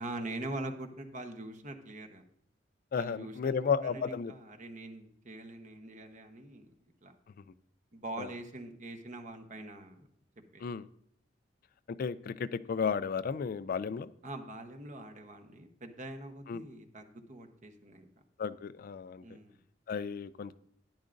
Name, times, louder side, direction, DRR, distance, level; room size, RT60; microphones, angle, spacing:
voice 1, 0.0-2.2 2.9-6.7 7.0-7.1 7.9-10.1 10.5-10.6 14.2-18.1 19.2-19.6, right 2 dB, 40° right, 6 dB, 1.0 m, -43 dB
voice 2, 2.9-4.3 8.2-8.3 10.6-10.8 12.0-14.1 16.5-16.6 18.4-19.2 19.9-20.5, left 6 dB, 50° left, 14 dB, 0.3 m, -33 dB
12.0 x 10.5 x 2.6 m, 0.68 s
head